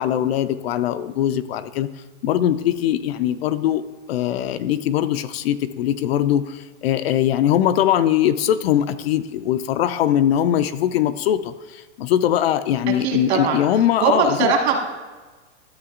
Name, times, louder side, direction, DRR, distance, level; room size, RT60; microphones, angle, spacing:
voice 1, 0.0-1.9 2.2-3.8 4.1-14.5, left 11 dB, 55° left, 12 dB, 0.4 m, -21 dB
voice 2, 13.0-13.6 14.0-14.8, right 5 dB, 60° right, 2 dB, 1.6 m, -20 dB
12.5 x 7.8 x 2.4 m, 1.3 s
supercardioid pair, 165°, 36 cm